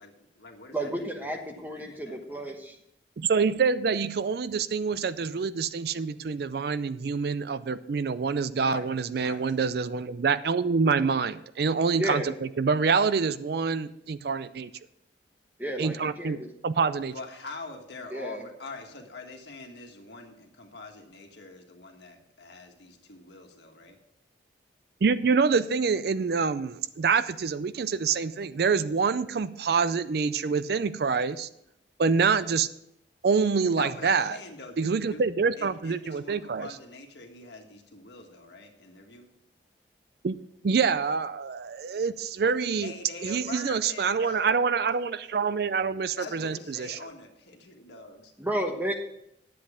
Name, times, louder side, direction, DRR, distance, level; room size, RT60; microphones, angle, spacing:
voice 1, 0.0-2.4 8.6-9.5 17.1-24.0 33.7-35.2 35.6-39.3 42.8-44.6 46.1-48.3, left 3 dB, 65° left, 3 dB, 1.6 m, -44 dB
voice 2, 0.7-2.8 12.0-12.3 15.6-16.5 18.1-18.4 48.4-48.9, right 1 dB, 10° right, 4 dB, 1.0 m, -32 dB
voice 3, 3.2-14.7 15.8-17.1 25.0-31.5 32.0-32.7 33.2-34.4 34.8-36.7 40.2-40.4 40.6-42.9 43.2-47.0, right 5 dB, 55° right, 15 dB, 0.4 m, -26 dB
10.5 x 7.7 x 5.0 m, 0.79 s
head